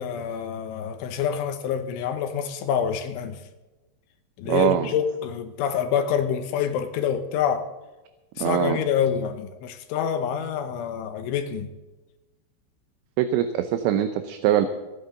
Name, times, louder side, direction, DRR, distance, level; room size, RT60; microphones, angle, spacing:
voice 1, 0.0-3.4 4.4-7.7 8.4-11.7, left 8 dB, 80° left, 8 dB, 3.5 m, -27 dB
voice 2, 4.5-4.9 8.4-8.8 13.2-14.7, right 11 dB, 80° right, 8 dB, 3.0 m, -22 dB
26.5 x 9.2 x 3.9 m, 1.1 s
omnidirectional pair, 5.6 m